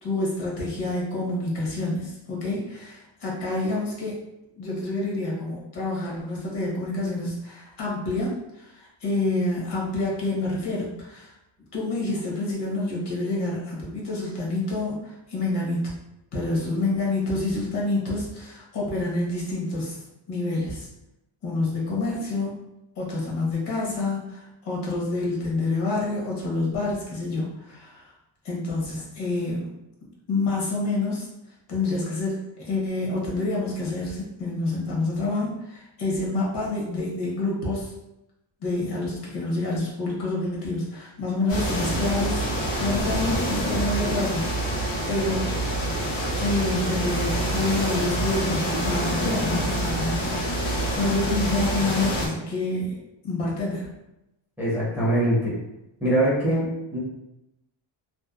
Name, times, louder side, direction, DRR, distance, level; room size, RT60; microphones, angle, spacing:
voice 1, 0.0-4.2 4.6-11.3 11.7-15.9 16.3-20.0 20.3-20.9 21.4-22.6 23.0-28.1 28.4-29.7 30.3-31.3 31.7-37.9 38.6-44.8 45.1-45.5 46.4-53.0 53.2-53.9, left 2 dB, 55° left, -4 dB, 0.9 m, -28 dB
sound 1, 41.5-52.3, right 1 dB, 85° left, 1.0 m, -26 dB
voice 2, 54.6-55.6 56.0-57.0, right 1 dB, 5° right, -8 dB, 0.5 m, -23 dB
2.7 x 2.0 x 2.3 m, 0.89 s
cardioid pair, 165°, 49 cm